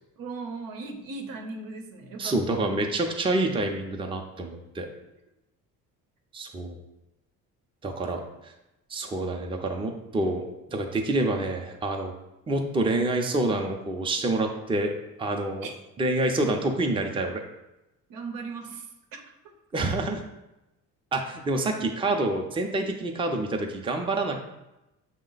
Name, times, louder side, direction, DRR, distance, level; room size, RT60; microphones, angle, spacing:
voice 1, 0.2-2.6 15.6-15.7 18.1-18.9 19.1-19.2, right 4 dB, 85° right, 3 dB, 0.8 m, -37 dB
voice 2, 2.2-4.9 6.3-6.8 7.8-8.5 8.9-10.4 10.7-12.1 12.5-14.9 15.2-15.7 16.0-17.4 19.7-20.2 21.1-24.4, right 2 dB, 15° right, 3 dB, 0.5 m, -27 dB
6.4 x 2.1 x 3.9 m, 0.95 s
cardioid pair, 110°, 34 cm